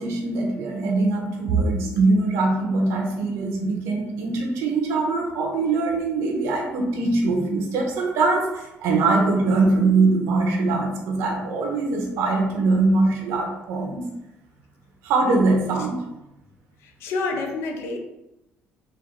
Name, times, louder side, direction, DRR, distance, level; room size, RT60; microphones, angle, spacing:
voice 1, 0.0-14.0 15.0-16.0, right 3 dB, 90° right, 1 dB, 1.0 m, -22 dB
voice 2, 16.8-18.0, left 3 dB, 70° left, 3 dB, 0.7 m, -28 dB
4.5 x 2.6 x 3.9 m, 0.93 s
cardioid pair, 165°, 5 cm